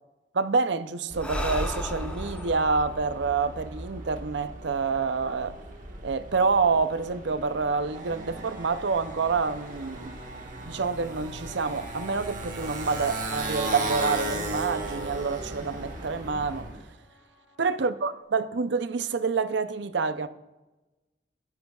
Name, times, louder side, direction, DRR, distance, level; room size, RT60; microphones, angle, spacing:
voice 1, 0.3-5.6 6.0-10.2 10.6-16.7 17.6-20.3, right 4 dB, 75° right, 0.6 m, -27 dB
Breathing, 1.1-4.6, equal, 5° left, 1.3 m, -35 dB
Motorcycle, 1.5-16.8, right 2 dB, 40° right, 1.5 m, -37 dB
sound 1, 6.3-18.2, equal, 35° left, 2.3 m, -56 dB
21.5 x 10.5 x 2.4 m
head